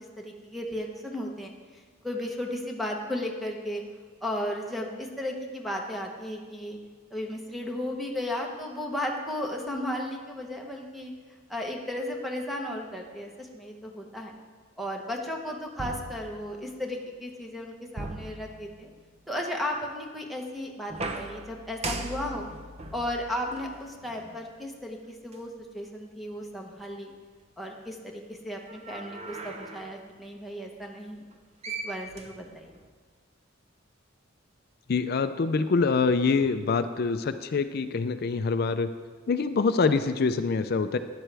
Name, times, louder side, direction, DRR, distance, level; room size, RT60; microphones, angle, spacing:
voice 1, 0.0-3.8 4.2-6.8 7.1-11.1 11.5-14.3 14.8-18.9 19.3-22.5 22.9-27.1 27.6-31.3 31.8-32.7, left 1 dB, ahead, 1 dB, 0.9 m, -35 dB
sound 1, 15.8-16.9 18.0-19.1 20.9-24.5 25.3-25.4 28.7-30.0 31.3-31.4 31.6-32.9, right 2 dB, 35° right, 0.7 m, -39 dB
voice 2, 34.9-38.9 39.3-41.0, left 4 dB, 50° left, 11 dB, 0.4 m, -25 dB
12.0 x 9.9 x 3.4 m, 1.5 s
head